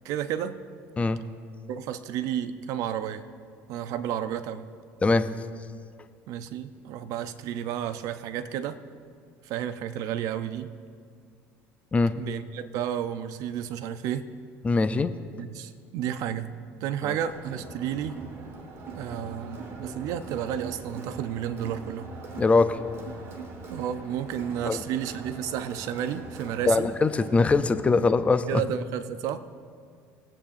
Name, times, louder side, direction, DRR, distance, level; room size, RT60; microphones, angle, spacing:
voice 1, 0.0-0.6 1.7-3.2 3.7-4.6 6.3-8.8 9.4-10.7 12.1-14.3 15.4-16.5 16.8-18.2 19.0-22.1 23.7-26.9 28.5-29.4, right 10 dB, 65° right, 11 dB, 0.7 m, -32 dB
voice 2, 14.6-15.1 17.0-17.1 22.4-22.8 24.7-24.8 26.7-28.6, left 3 dB, 20° left, 11 dB, 0.5 m, -22 dB
Crowd, 17.1-28.7, right 3 dB, 45° right, 1.8 m, -42 dB
22.0 x 8.6 x 2.7 m, 2.1 s
supercardioid pair, 110°, 6 cm